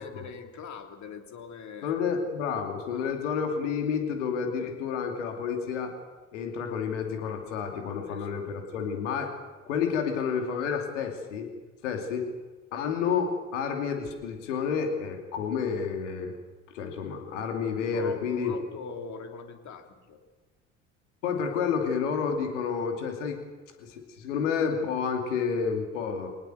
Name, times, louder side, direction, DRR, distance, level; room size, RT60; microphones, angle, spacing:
voice 1, 0.0-2.0 2.9-3.1 8.0-8.6 17.9-20.2, left 5 dB, 50° left, 5 dB, 3.1 m, -42 dB
voice 2, 1.8-5.9 6.3-9.4 9.7-11.5 11.8-12.3 12.7-16.3 16.7-18.5 21.2-23.4 23.8-26.3, left 6 dB, 75° left, 4 dB, 2.8 m, -30 dB
24.5 x 19.0 x 7.8 m, 1.3 s
figure-of-eight pair, 55°, 36 cm